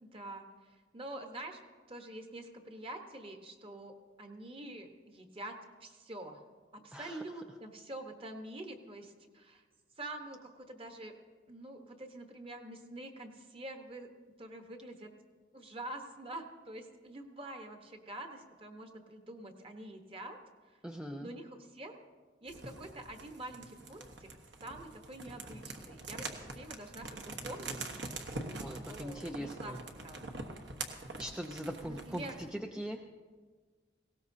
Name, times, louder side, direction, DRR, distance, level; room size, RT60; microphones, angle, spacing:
voice 1, 0.1-0.4 0.9-1.6 1.9-6.4 6.7-9.6 10.0-11.1 11.5-14.1 14.4-15.1 15.5-20.4 20.7-20.8 21.2-22.0 22.4-24.3 24.6-27.8 28.6-29.8 30.0-30.2 32.1-32.4, right 1 dB, 30° right, 5 dB, 1.1 m, -46 dB
voice 2, 6.9-7.2 20.8-21.3 28.6-29.8 31.2-33.0, equal, 5° right, 3 dB, 0.4 m, -41 dB
sound 1, 22.5-32.5, right 3 dB, 65° right, 1.3 m, -44 dB
19.0 x 17.0 x 2.8 m, 1.5 s
head